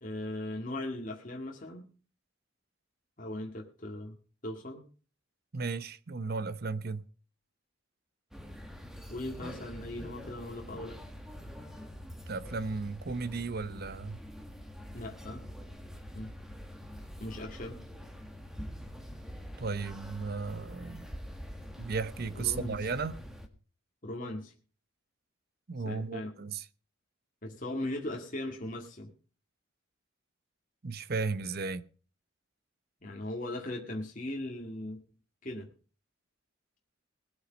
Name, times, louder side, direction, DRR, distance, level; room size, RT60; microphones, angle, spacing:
voice 1, 0.0-1.9 3.2-4.2 4.4-4.9 9.1-11.0 14.9-15.5 16.1-16.3 17.2-17.8 22.3-22.8 24.0-24.5 25.8-26.3 27.4-29.1 33.0-35.0 35.4-35.7, left 1 dB, 40° left, 2.1 m, -38 dB
voice 2, 5.5-7.1 12.3-14.2 19.6-21.1 21.8-23.2 25.7-26.6 30.8-31.8, right 4 dB, 50° right, 0.8 m, -35 dB
sound 1, 8.3-23.5, equal, ahead, 1.6 m, -45 dB
20.0 x 8.3 x 5.2 m
head